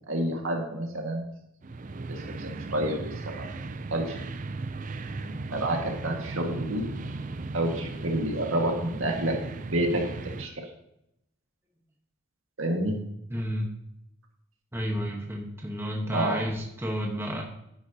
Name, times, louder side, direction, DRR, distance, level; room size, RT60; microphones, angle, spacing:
voice 1, 0.1-1.2 2.1-3.5 3.9-4.2 5.5-6.8 7.5-10.0 10.4-10.7 12.6-13.0 16.1-16.4, right 1 dB, 75° right, 1 dB, 1.9 m, -29 dB
sound 1, 1.6-10.5, right 3 dB, 40° right, 0.5 m, -37 dB
voice 2, 13.3-13.7 14.7-17.4, equal, 10° right, 0 dB, 1.2 m, -31 dB
10.5 x 9.8 x 2.9 m, 0.79 s
head